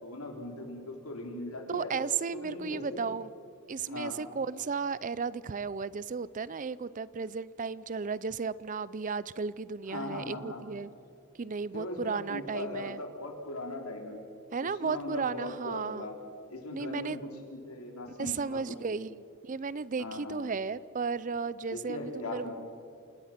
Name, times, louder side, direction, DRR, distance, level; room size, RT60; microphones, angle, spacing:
voice 1, 0.0-1.9 2.3-3.0 3.9-4.2 9.9-10.6 11.7-14.2 14.6-16.2 16.5-18.6 20.0-20.5 21.7-22.5, left 2 dB, 85° left, 2 dB, 3.8 m, -39 dB
voice 2, 1.7-3.3 3.7-10.9 11.4-13.0 14.5-16.1 16.7-17.2 18.2-22.5, right 5 dB, 35° right, 19 dB, 0.5 m, -34 dB
28.0 x 19.5 x 5.9 m, 2.4 s
head